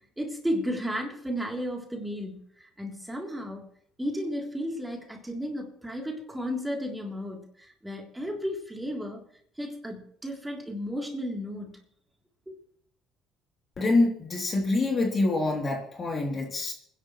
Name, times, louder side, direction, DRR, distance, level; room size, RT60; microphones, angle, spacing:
voice 1, 0.2-3.7 4.0-9.2 9.6-11.7 12.5-12.6, equal, 5° right, -1 dB, 3.3 m, -33 dB
voice 2, 13.8-16.7, left 2 dB, 35° left, 0 dB, 3.2 m, -26 dB
27.5 x 11.0 x 3.2 m, 0.67 s
cardioid pair, 105°, 0 cm